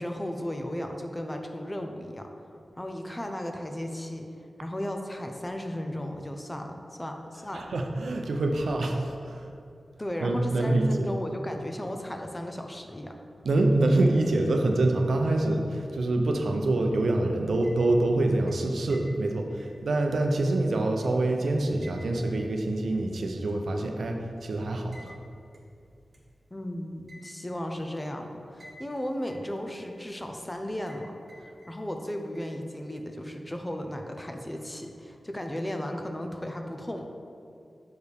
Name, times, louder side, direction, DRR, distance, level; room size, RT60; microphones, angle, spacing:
voice 1, 0.0-2.3 2.8-4.3 4.6-7.6 10.0-13.2 26.5-37.1, left 1 dB, 20° left, 4 dB, 0.6 m, -35 dB
voice 2, 7.5-9.5 10.2-11.1 13.4-25.2, right 2 dB, 85° right, 3 dB, 0.6 m, -26 dB
sound 1, 17.4-18.1 18.5-21.3 21.8-23.1 23.5-23.6 24.9-25.1 25.5-25.6 26.1-26.2 27.1-27.6 28.6-29.0 29.3-30.2 30.9-31.0 31.3-32.0 32.3-33.0, equal, 60° right, 1.1 m, -53 dB
6.6 x 4.6 x 3.4 m, 2.5 s
cardioid pair, 55°, 0 cm